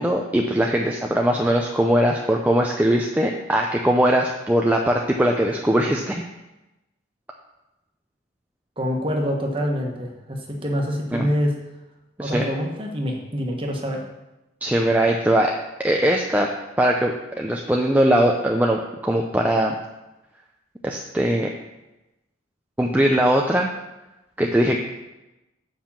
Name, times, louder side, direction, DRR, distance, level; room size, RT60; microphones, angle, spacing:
voice 1, 0.0-6.2 11.1-11.3 12.2-12.5 14.6-15.5 15.8-16.5 16.8-19.8 20.8-21.5 22.8-23.7 24.4-24.8, right 1 dB, 10° right, 0 dB, 0.5 m, -20 dB
voice 2, 8.8-11.6 12.2-14.0, equal, 25° right, 0 dB, 1.3 m, -26 dB
7.2 x 5.6 x 7.3 m, 1.0 s
head